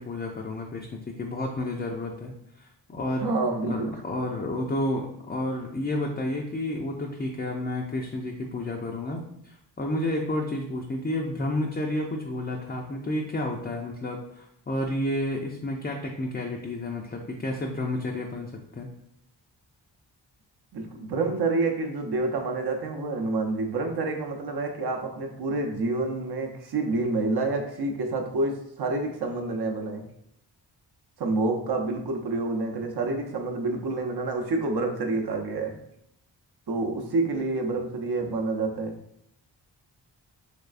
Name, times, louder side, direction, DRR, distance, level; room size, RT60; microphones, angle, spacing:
voice 1, 0.0-3.3 3.7-18.9, left 1 dB, 25° left, 0 dB, 0.4 m, -31 dB
voice 2, 3.2-3.9 20.7-30.0 31.2-35.7 36.7-38.9, right 3 dB, 60° right, 3 dB, 0.7 m, -28 dB
3.4 x 3.1 x 2.4 m, 0.73 s
cardioid pair, 65°, 43 cm